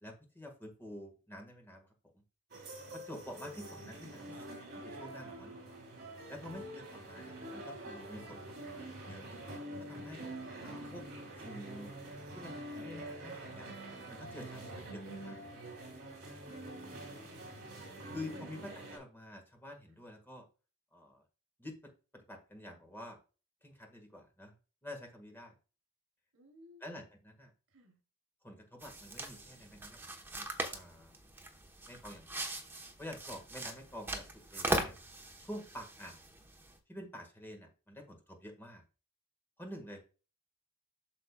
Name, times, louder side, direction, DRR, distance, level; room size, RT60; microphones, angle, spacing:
voice 1, 0.0-1.9 2.1-2.2 2.9-5.5 6.3-9.2 9.9-10.3 10.6-11.0 11.4-12.0 12.3-13.7 14.1-15.5 18.1-20.4 20.9-21.2 21.6-21.7 22.1-23.2 23.6-24.5 24.8-25.5 26.8-27.5 28.4-30.0 30.3-31.2 31.9-32.5 33.0-34.9 35.4-36.2 36.9-38.8 39.6-40.0, left 1 dB, 10° left, 1.5 m, -48 dB
sound 1, 2.5-19.0, right 1 dB, 50° right, 3.3 m, -46 dB
voice 2, 26.3-26.8 27.7-28.0, left 1 dB, 80° right, 2.8 m, -63 dB
sound 2, 28.8-36.8, right 1 dB, 10° right, 1.0 m, -40 dB
8.3 x 6.6 x 2.3 m
head